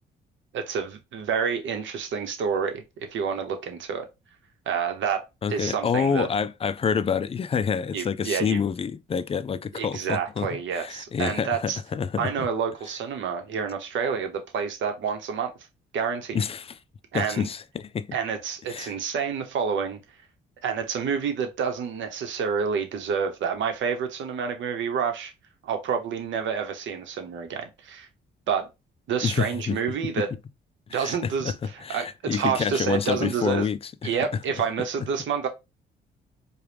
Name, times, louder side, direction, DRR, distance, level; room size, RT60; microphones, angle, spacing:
voice 1, 0.5-4.1 4.7-5.2 5.5-6.3 7.9-8.6 9.8-11.8 12.2-15.5 15.9-16.4 17.1-17.5 18.1-20.0 20.6-25.3 25.6-28.1 28.5-28.7 29.1-30.3 30.9-33.7 34.0-35.5, right 6 dB, 70° right, 1.0 m, -28 dB
voice 2, 5.4-10.5 10.7-12.3 16.3-16.8 17.1-18.1 18.7-18.9 29.2-29.8 30.2-30.3 30.9-34.1, left 6 dB, 30° left, 0.3 m, -27 dB
4.7 x 2.3 x 3.4 m
cardioid pair, 90°, 20 cm